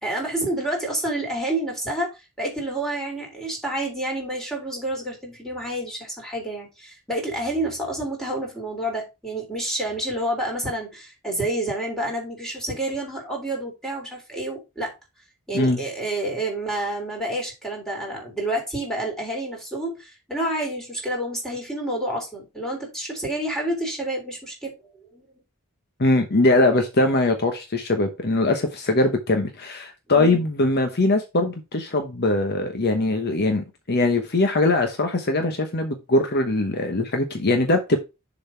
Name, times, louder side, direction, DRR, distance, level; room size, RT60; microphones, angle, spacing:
voice 1, 0.0-2.1 2.4-14.9 15.5-24.8 25.1-25.3 30.1-30.4, right 1 dB, ahead, 3.6 m, -29 dB
voice 2, 26.0-38.0, left 2 dB, 50° left, 1.0 m, -21 dB
7.1 x 4.0 x 5.6 m
head